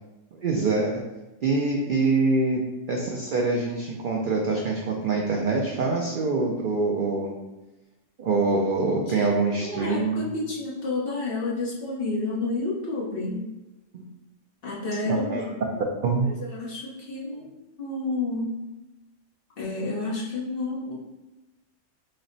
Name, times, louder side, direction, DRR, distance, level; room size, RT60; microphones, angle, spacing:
voice 1, 0.3-1.0 1.4-2.6 2.9-7.3 8.2-10.3 13.9-14.0 15.0-15.4 16.0-16.3, right 3 dB, 65° right, -1 dB, 0.5 m, -25 dB
voice 2, 9.5-13.4 14.6-15.5 16.2-17.5 17.8-18.6 19.6-20.9, left 2 dB, 50° left, -5 dB, 1.0 m, -30 dB
4.2 x 2.0 x 3.8 m, 1.0 s
omnidirectional pair, 1.4 m